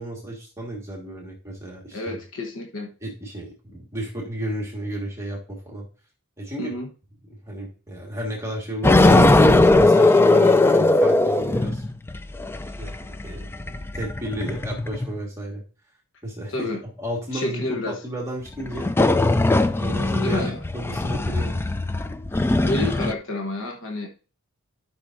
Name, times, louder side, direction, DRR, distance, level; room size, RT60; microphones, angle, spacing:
voice 1, 0.0-2.2 3.0-5.9 6.4-6.8 7.3-11.8 12.8-13.0 13.2-15.6 16.2-18.9 19.8-21.6, right 1 dB, 15° right, -2 dB, 1.7 m, -33 dB
voice 2, 1.9-2.9 6.6-6.9 16.5-16.8 17.3-18.0 20.2-20.6 22.3-24.1, left 2 dB, 65° left, 2 dB, 1.2 m, -29 dB
sound 1, 8.8-15.1 18.7-23.1, left 2 dB, 10° left, 0.3 m, -19 dB
12.0 x 5.5 x 2.6 m, 0.36 s
head